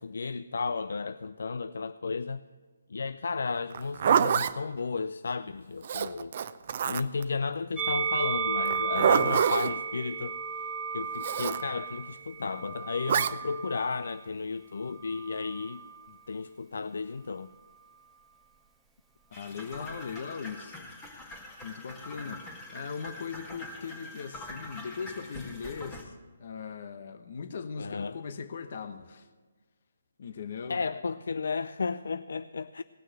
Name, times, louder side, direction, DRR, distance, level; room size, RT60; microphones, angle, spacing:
voice 1, 0.0-2.4 2.9-6.3 6.9-10.4 10.9-15.8 16.3-17.5 27.8-28.2 30.7-32.8, left 4 dB, 70° left, 0.4 m, -33 dB
Zipper (clothing), 3.7-4.5 5.8-7.2 8.7-9.7 11.2-11.6 13.1-13.3, right 8 dB, 45° right, 0.6 m, -26 dB
Musical instrument, 7.8-14.2 15.0-16.0, right 5 dB, ahead, 0.9 m, -34 dB
voice 2, 19.3-20.9 21.6-22.4 22.7-29.3 30.2-30.9, left 6 dB, 55° left, 1.0 m, -39 dB
sound 1, 19.3-26.0, left 1 dB, 15° left, 2.1 m, -44 dB
18.5 x 6.3 x 7.8 m
hypercardioid pair, 150°, 0 cm